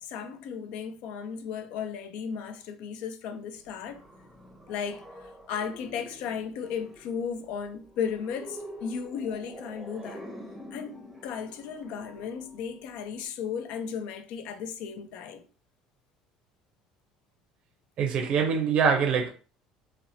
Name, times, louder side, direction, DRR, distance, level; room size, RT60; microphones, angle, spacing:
voice 1, 0.0-4.0 4.7-10.3 10.7-15.5 18.2-18.3, left 7 dB, 70° left, 0.4 m, -35 dB
sound 1, 3.5-13.3, equal, 5° right, 0.7 m, -47 dB
voice 2, 18.0-19.3, right 6 dB, 55° right, 0.5 m, -24 dB
2.8 x 2.0 x 2.6 m
supercardioid pair, 80°, 2 cm